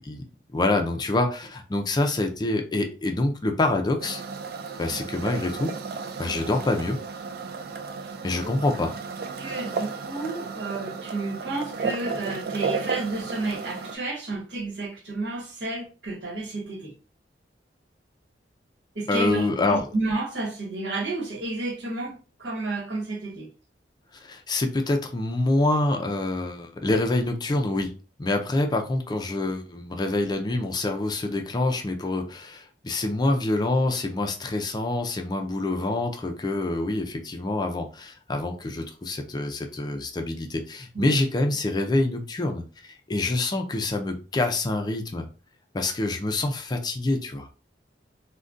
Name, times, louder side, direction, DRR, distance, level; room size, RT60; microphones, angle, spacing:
voice 1, 0.5-4.2 4.8-5.7 6.2-7.0 8.2-8.9 19.1-19.9 24.2-27.9 28.2-45.2 45.7-47.5, left 2 dB, 25° left, 0.4 m, -26 dB
sound 1, 4.0-14.0, right 5 dB, 60° right, 0.3 m, -33 dB
voice 2, 9.4-16.9 18.9-23.5 40.9-41.1, right 2 dB, 75° right, 1.1 m, -31 dB
3.6 x 2.2 x 2.5 m
head